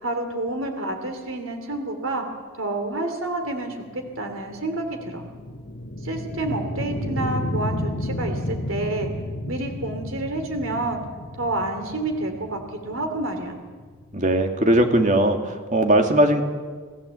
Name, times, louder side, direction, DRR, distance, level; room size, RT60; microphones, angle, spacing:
voice 1, 0.0-2.2 2.6-5.2 6.0-9.1 9.5-11.0 11.4-13.5, right 2 dB, 75° right, 5 dB, 3.0 m, -29 dB
sound 1, 3.7-14.4, left 1 dB, 55° left, 1.9 m, -32 dB
voice 2, 14.1-16.4, right 1 dB, 35° right, 5 dB, 2.3 m, -19 dB
29.0 x 17.0 x 8.3 m, 1.5 s
head